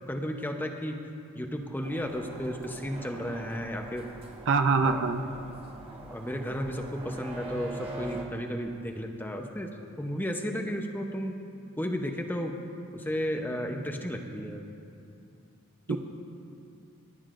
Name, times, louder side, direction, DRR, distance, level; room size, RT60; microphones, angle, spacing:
voice 1, 0.1-1.0 1.4-4.1 4.8-5.0 6.1-9.7 10.0-11.4 11.8-12.6 12.9-14.6 15.9-16.0, equal, 10° left, 3 dB, 0.8 m, -33 dB
sound 1, 1.8-8.3, right 1 dB, 25° right, 1.2 m, -43 dB
voice 2, 4.5-5.2 15.9-16.0, right 4 dB, 60° right, 7 dB, 0.6 m, -24 dB
27.0 x 9.5 x 2.5 m, 2.6 s
head